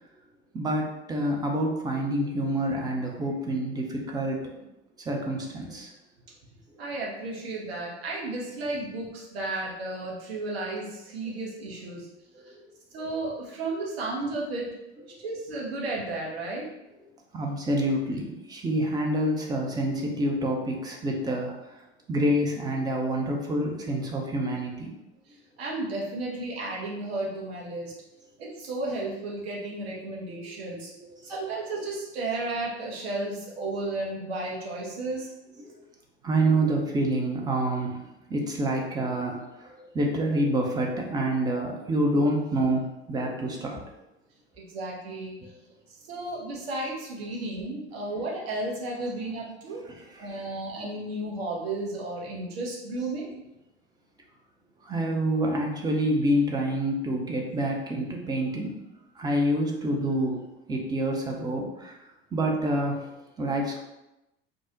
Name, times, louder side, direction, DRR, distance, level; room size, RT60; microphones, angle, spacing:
voice 1, 0.5-4.5 5.0-5.9 12.4-12.5 15.1-15.2 17.3-21.5 22.1-25.0 35.6-35.8 36.2-38.0 38.3-43.9 49.9-50.5 54.8-58.8 59.2-60.4 60.7-61.9 62.3-63.1 63.4-63.8, right 1 dB, 10° right, 0 dB, 0.5 m, -27 dB
voice 2, 6.8-12.1 12.4-12.5 12.9-14.7 15.2-16.7 25.6-27.9 28.4-30.9 31.2-35.3 44.7-45.3 46.1-49.8 50.2-53.3, right 2 dB, 65° right, -3 dB, 0.9 m, -33 dB
2.4 x 2.0 x 3.7 m, 0.94 s
figure-of-eight pair, 70°, 33 cm